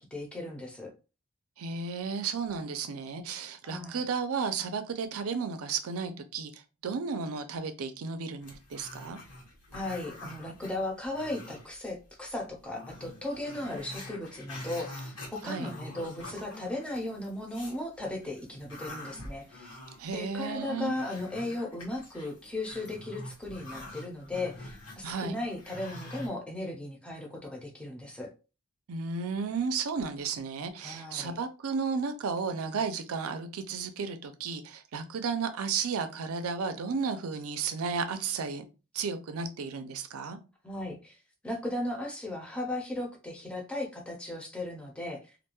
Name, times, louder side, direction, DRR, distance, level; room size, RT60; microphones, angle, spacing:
voice 1, 0.1-0.9 3.6-4.0 9.7-19.8 20.1-28.3 30.8-31.3 40.6-41.2 41.4-45.3, left 1 dB, 5° left, 0.5 m, -36 dB
voice 2, 1.6-6.5 6.8-9.2 15.4-15.7 20.0-20.9 25.0-25.4 28.9-38.6 38.9-40.4, right 5 dB, 80° right, 0.4 m, -33 dB
Growling, 8.4-11.9 12.3-12.4 12.7-17.8 18.2-26.3, left 1 dB, 70° left, 1.3 m, -45 dB
2.5 x 2.2 x 2.9 m
head